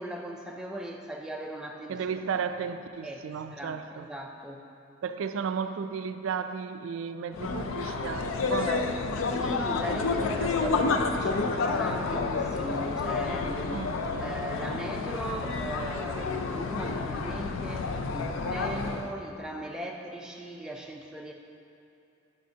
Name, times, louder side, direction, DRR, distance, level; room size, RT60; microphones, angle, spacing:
voice 1, 0.0-2.0 2.4-2.5 3.0-3.2 3.5-4.6 9.4-13.9 14.2-21.3, right 1 dB, 5° right, 1 dB, 0.4 m, -38 dB
voice 2, 1.9-4.1 5.0-8.9 13.7-14.0, right 6 dB, 75° right, 10 dB, 0.3 m, -34 dB
sound 1, 7.3-19.1, left 4 dB, 80° left, 0.4 m, -30 dB
10.5 x 5.2 x 2.8 m, 2.8 s
head